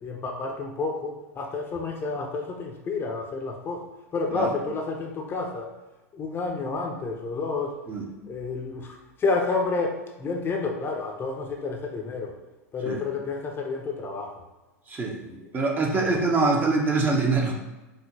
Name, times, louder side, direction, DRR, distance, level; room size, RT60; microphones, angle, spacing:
voice 1, 0.0-5.7 6.1-7.7 8.3-12.3 12.7-14.3 15.1-15.5 15.9-16.2, left 4 dB, 25° left, 2 dB, 0.7 m, -30 dB
voice 2, 14.9-15.2 15.5-17.5, right 3 dB, 20° right, 0 dB, 0.8 m, -24 dB
4.9 x 2.9 x 2.8 m, 1.1 s
figure-of-eight pair, 90°, 8 cm